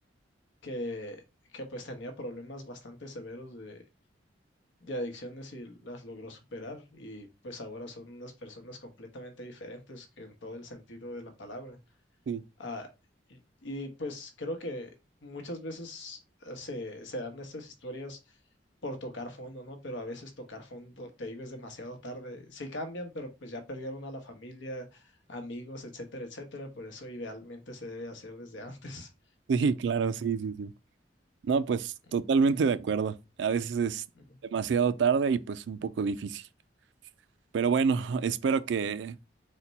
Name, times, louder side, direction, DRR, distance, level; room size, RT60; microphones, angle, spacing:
voice 1, 0.6-1.2 1.5-3.8 4.8-11.8 12.6-12.9 13.3-14.9 15.2-18.2 18.8-29.1, left 1 dB, 90° left, 1.0 m, -40 dB
voice 2, 29.5-30.7 31.4-34.0 34.5-36.4 37.5-39.2, right 5 dB, 70° right, 0.3 m, -27 dB
4.2 x 2.2 x 4.0 m
head